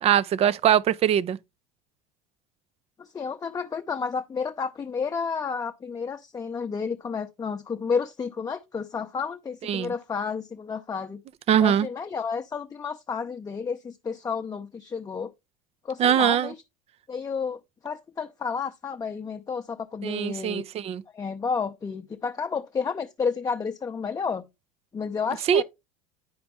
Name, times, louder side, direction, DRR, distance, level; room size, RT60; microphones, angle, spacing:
voice 1, 0.0-1.4 9.6-9.9 11.5-11.9 16.0-16.5 20.0-21.0 25.5-25.6, right 10 dB, 35° right, 0.5 m, -22 dB
voice 2, 3.0-11.2 11.6-15.3 15.8-16.6 17.1-20.6 21.1-24.4 24.9-25.6, left 5 dB, 20° left, 0.7 m, -31 dB
10.0 x 5.1 x 3.3 m
hypercardioid pair, 75°, 17 cm